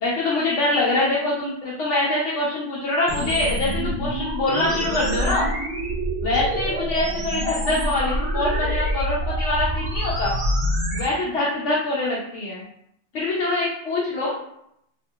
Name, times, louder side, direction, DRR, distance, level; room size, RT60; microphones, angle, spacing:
voice 1, 0.0-5.5 6.2-10.3 10.9-12.6 13.1-14.4, left 2 dB, 85° left, -5 dB, 0.9 m, -24 dB
sound 1, 3.1-11.1, right 1 dB, 80° right, 1.0 m, -26 dB
2.7 x 2.3 x 2.7 m, 0.76 s
omnidirectional pair, 1.2 m